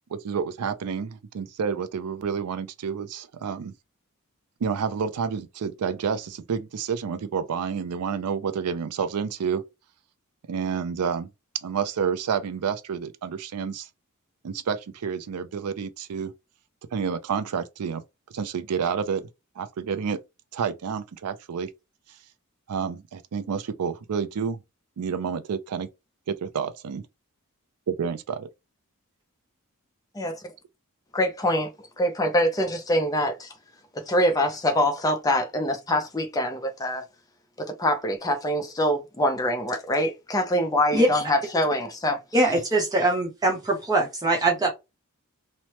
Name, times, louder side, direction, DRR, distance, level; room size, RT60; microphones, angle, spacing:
voice 1, 0.1-3.7 4.6-9.6 10.5-11.3 11.6-13.9 14.4-16.3 16.9-18.0 18.3-19.3 19.6-20.2 20.5-21.7 22.7-24.6 25.0-25.9 26.3-27.0 27.9-28.5, right 6 dB, 90° right, 0.4 m, -29 dB
voice 2, 31.1-33.5 33.9-37.0 37.6-42.2, equal, 15° left, 0.5 m, -24 dB
voice 3, 42.3-44.7, right 2 dB, 15° right, 0.7 m, -22 dB
3.1 x 2.0 x 2.9 m
head